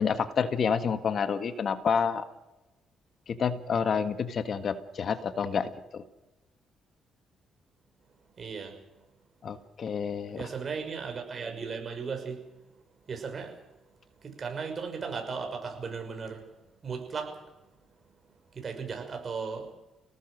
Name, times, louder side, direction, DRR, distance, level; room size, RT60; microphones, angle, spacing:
voice 1, 0.0-2.2 3.3-6.0 9.4-10.5, left 6 dB, 55° left, 10 dB, 1.6 m, -29 dB
voice 2, 8.4-8.8 10.3-12.4 13.1-13.6 14.2-16.4 16.8-17.4 18.5-19.7, right 5 dB, 45° right, 4 dB, 6.1 m, -36 dB
28.0 x 18.5 x 6.5 m, 1.0 s
cardioid pair, 90°, 0 cm